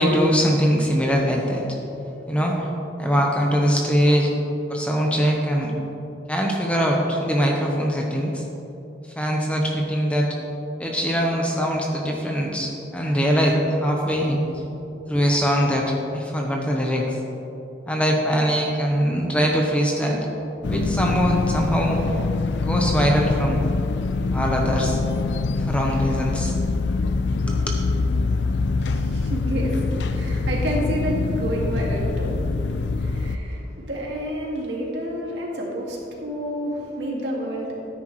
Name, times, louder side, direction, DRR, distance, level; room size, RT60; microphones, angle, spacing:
voice 1, 0.0-1.6 2.3-2.7 3.0-4.3 4.7-5.7 6.3-8.4 9.2-10.4 10.8-14.6 15.1-17.2 17.9-20.3 20.7-22.0 22.7-23.6 24.3-25.0 25.6-26.6 27.5-27.8, equal, 5° left, -1 dB, 1.0 m, -22 dB
sound 1, 20.6-33.4, left 3 dB, 80° left, 0.4 m, -24 dB
voice 2, 28.8-32.5 32.9-37.8, equal, 75° right, -3 dB, 2.2 m, -29 dB
13.0 x 9.8 x 3.2 m, 3.0 s
head